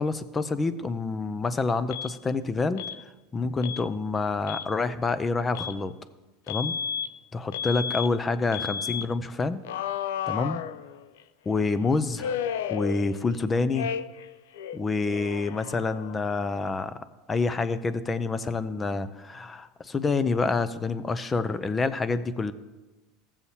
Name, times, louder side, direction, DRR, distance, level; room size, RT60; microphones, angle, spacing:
voice 1, 0.0-2.8 3.3-5.9 6.5-6.7 7.3-9.6 10.3-10.6 11.5-12.4 12.7-13.9 14.7-17.0 17.3-22.5, left 3 dB, 20° left, 13 dB, 0.5 m, -27 dB
Alarm, 1.9-2.1 2.8-3.0 3.6-3.8 4.4-4.7 5.5-5.8 6.5-7.1 7.5-8.1 8.5-9.1 9.6-11.2 12.2-13.4 13.7-14.3 14.5-16.3, left 8 dB, 85° left, 0.4 m, -33 dB
15.5 x 7.2 x 2.8 m, 1.2 s
supercardioid pair, 120°, 0 cm